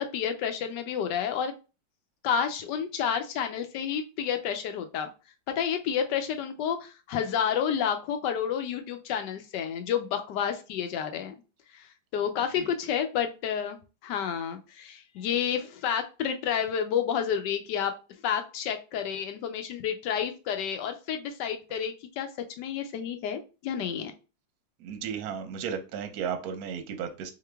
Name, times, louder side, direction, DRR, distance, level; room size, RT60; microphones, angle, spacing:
voice 1, 0.0-1.5 2.2-5.1 5.6-11.3 11.7-11.9 12.1-17.9 18.2-22.3 22.6-24.1, left 8 dB, 75° left, 7 dB, 1.1 m, -30 dB
voice 2, 24.8-27.3, right 7 dB, 65° right, 7 dB, 1.0 m, -34 dB
3.8 x 2.9 x 3.3 m, 0.32 s
omnidirectional pair, 2.1 m